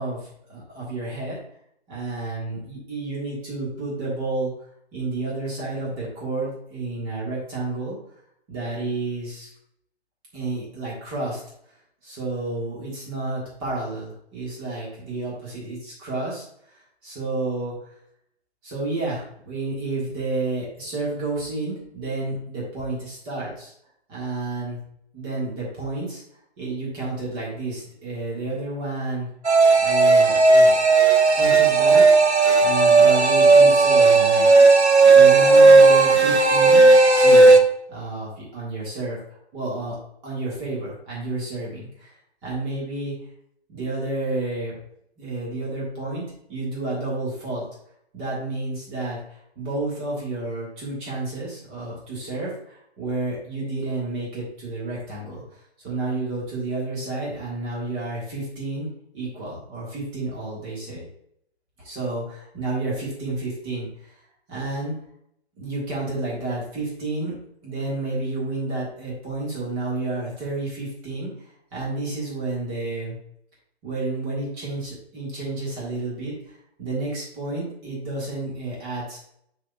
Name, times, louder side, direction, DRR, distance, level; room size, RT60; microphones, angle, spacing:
voice 1, 0.0-1.4 1.9-4.5 4.9-8.0 8.5-9.5 10.3-11.4 12.0-16.4 17.0-17.7 18.6-23.7 24.1-24.8 25.1-26.2 26.6-29.3 29.8-30.8 31.4-32.3 32.6-34.5 35.1-37.6 37.9-39.2 39.5-40.0 40.2-42.1 42.4-43.1 43.7-44.8 45.2-46.2 46.5-47.7 48.1-58.9 59.1-61.0 61.8-64.2 64.5-65.0 65.6-67.4 67.6-73.2 73.8-79.2, right 2 dB, 15° right, -5 dB, 1.6 m, -30 dB
sound 1, 29.4-37.6, right 3 dB, 85° right, 0.9 m, -14 dB
9.4 x 4.2 x 2.4 m, 0.72 s
figure-of-eight pair, 145°, 33 cm